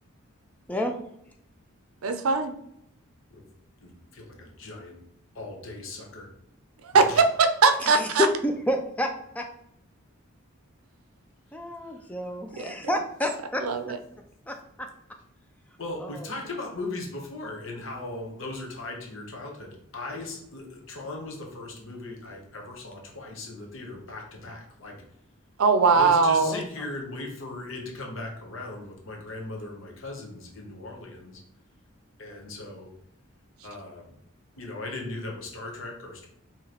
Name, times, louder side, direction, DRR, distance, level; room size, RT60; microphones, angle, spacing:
voice 1, 2.0-2.5 6.8-7.2 7.6-8.3 12.6-12.7 13.6-14.0 25.6-26.5, right 4 dB, 80° right, 8 dB, 0.5 m, -20 dB
voice 2, 3.8-5.0 5.3-6.3 6.9-7.2 15.8-25.0 25.9-31.4 32.2-32.9 33.6-34.1 34.6-36.3, left 2 dB, 65° left, 1 dB, 0.9 m, -38 dB
voice 3, 7.8-9.5 11.5-13.6 14.5-14.9 16.0-16.3 26.5-26.6, left 1 dB, 5° left, 3 dB, 0.4 m, -29 dB
4.9 x 2.9 x 2.9 m, 0.76 s
head